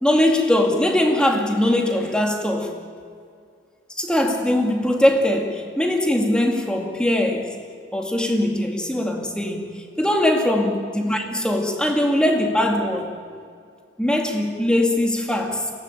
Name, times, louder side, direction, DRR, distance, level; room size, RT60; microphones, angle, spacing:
voice 1, 0.0-2.8 4.0-7.5 7.9-13.1 14.0-15.7, left 1 dB, 5° left, 2 dB, 2.3 m, -21 dB
22.5 x 18.5 x 9.0 m, 2.2 s
head